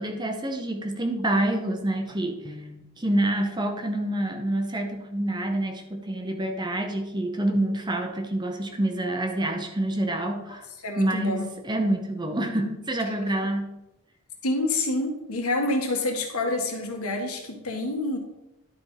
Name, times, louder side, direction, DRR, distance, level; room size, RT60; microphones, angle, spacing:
voice 1, 0.0-10.6 11.0-13.7, right 1 dB, 20° right, 5 dB, 0.9 m, -27 dB
voice 2, 10.8-11.5 14.4-18.2, left 2 dB, 80° left, 2 dB, 1.8 m, -27 dB
11.0 x 4.5 x 4.9 m, 0.91 s
head